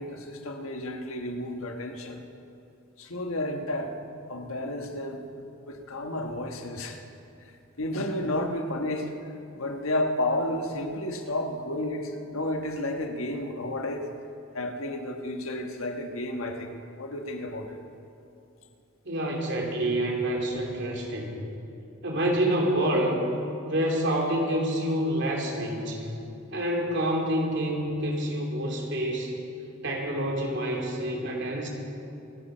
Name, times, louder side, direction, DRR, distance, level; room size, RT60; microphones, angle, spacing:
voice 1, 0.0-2.2 3.0-3.9 4.3-5.2 5.7-7.0 7.4-14.1 14.5-17.8, left 1 dB, 85° left, 4 dB, 1.4 m, -32 dB
voice 2, 19.0-21.4 22.0-23.2 23.6-26.1 26.5-29.3 29.8-31.7, right 1 dB, 60° right, -1 dB, 2.9 m, -27 dB
26.0 x 8.8 x 5.6 m, 2.7 s
head